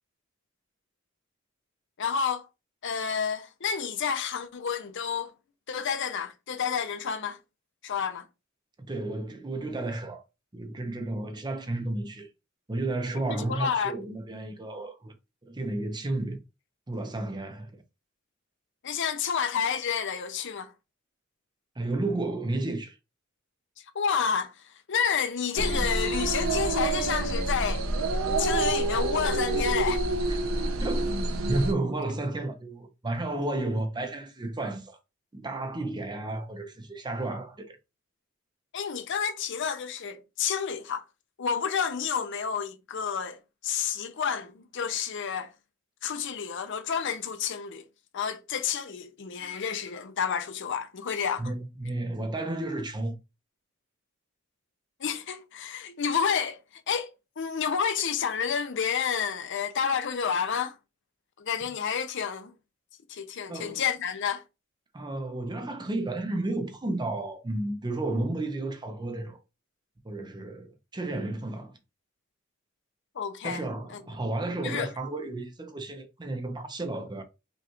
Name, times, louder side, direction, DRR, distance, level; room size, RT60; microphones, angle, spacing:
voice 1, 2.0-2.5 2.8-5.3 5.7-7.4 7.8-8.2 13.1-13.9 18.8-20.7 23.9-24.5 24.9-27.9 28.4-30.0 38.7-41.0 41.4-45.5 46.0-47.8 48.1-51.5 55.0-56.6 56.9-60.8 61.4-62.5 63.1-64.4 73.2-73.6 73.9-74.0 74.6-74.9, left 7 dB, 60° left, 0.6 m, -30 dB
voice 2, 8.8-10.2 10.5-12.3 12.7-15.1 15.5-16.4 16.9-17.8 21.8-23.0 30.3-30.4 30.8-31.1 31.5-35.0 35.3-37.8 51.4-53.2 63.5-63.8 64.9-69.4 70.0-71.7 73.4-77.2, right 2 dB, 20° right, 0.6 m, -32 dB
sound 1, 25.6-31.7, right 2 dB, 90° right, 0.7 m, -27 dB
5.3 x 2.4 x 3.0 m
head